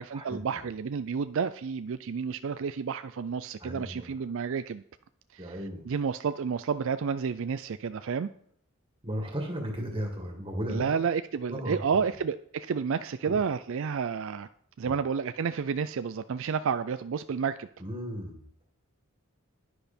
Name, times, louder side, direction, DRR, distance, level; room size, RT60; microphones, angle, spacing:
voice 1, 0.0-4.8 5.3-8.3 10.7-14.5 14.8-17.7, right 6 dB, 60° right, 0.4 m, -30 dB
voice 2, 3.6-4.1 5.4-5.8 9.0-10.9 11.5-11.8 13.3-13.4 17.8-18.6, equal, 25° right, 1.9 m, -35 dB
10.5 x 10.5 x 4.4 m
head